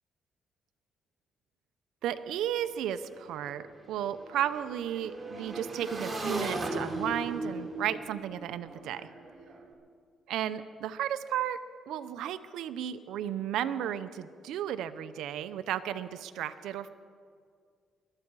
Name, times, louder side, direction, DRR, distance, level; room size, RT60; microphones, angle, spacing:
voice 1, 2.0-9.1 10.3-11.6 11.9-16.9, right 10 dB, 85° right, 11 dB, 0.7 m, -34 dB
Motorcycle / Engine, 2.1-2.2 2.5-9.6, right 2 dB, 25° right, 3.3 m, -38 dB
21.0 x 13.0 x 4.8 m, 2.1 s
cardioid pair, 90°, 0 cm